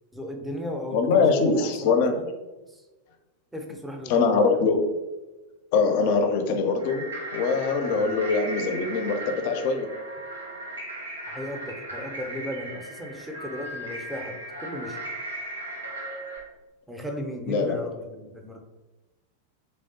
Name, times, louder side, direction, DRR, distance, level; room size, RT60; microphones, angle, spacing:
voice 1, 0.1-2.3 2.7-2.8 3.5-4.7 7.9-8.2 11.3-15.0 16.9-18.6, equal, 5° right, 3 dB, 0.5 m, -36 dB
voice 2, 0.9-2.1 4.1-4.8 5.7-7.0 7.3-9.9 17.5-17.8, left 4 dB, 45° left, 6 dB, 0.4 m, -23 dB
sound 1, 6.8-16.4, right 1 dB, 75° right, 0.8 m, -37 dB
3.4 x 3.2 x 2.7 m, 1.1 s
figure-of-eight pair, 90°, 0 cm